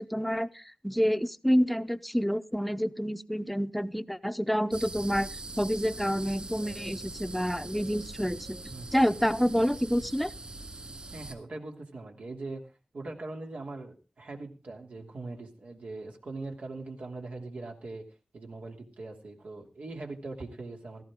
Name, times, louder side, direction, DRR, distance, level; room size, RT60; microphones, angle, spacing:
voice 1, 0.0-5.3 5.6-8.6 8.9-10.3, equal, ahead, 11 dB, 0.8 m, -28 dB
sound 1, 4.7-11.3, right 2 dB, 45° right, 4.1 m, -42 dB
voice 2, 11.1-12.6 12.9-18.0 18.3-21.0, right 3 dB, 85° right, 1 dB, 2.9 m, -41 dB
16.5 x 14.5 x 3.7 m, 0.32 s
wide cardioid pair, 65°, 2 cm